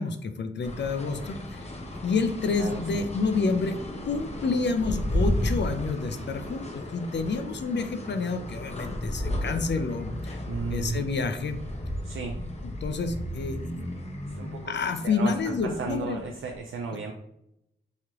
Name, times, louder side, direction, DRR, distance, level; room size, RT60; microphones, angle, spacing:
voice 1, 0.0-1.7 2.0-3.8 4.0-10.4 10.7-11.6 12.8-13.6 14.7-16.2, left 4 dB, 55° left, 9 dB, 0.5 m, -29 dB
sound 1, 0.6-16.6, left 1 dB, 30° left, 0.8 m, -34 dB
voice 2, 2.6-3.1 10.5-11.1 12.0-12.4 14.3-14.7 15.0-17.1, right 5 dB, 70° right, 1 dB, 0.5 m, -34 dB
3.2 x 2.8 x 3.6 m, 0.80 s
cardioid pair, 45°, 21 cm